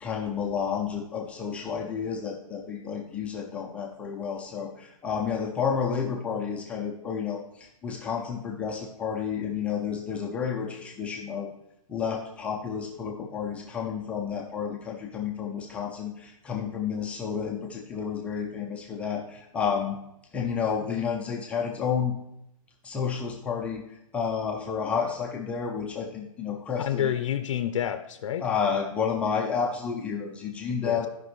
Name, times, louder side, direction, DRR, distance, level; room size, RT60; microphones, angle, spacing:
voice 1, 0.0-11.5 11.9-20.0 20.3-22.2 22.8-23.8 24.1-27.1 28.4-31.1, left 6 dB, 5° left, -1 dB, 0.4 m, -30 dB
voice 2, 26.8-28.5 30.8-31.1, left 10 dB, 55° left, 9 dB, 0.5 m, -29 dB
14.5 x 5.1 x 3.1 m, 0.82 s
hypercardioid pair, 160°, 19 cm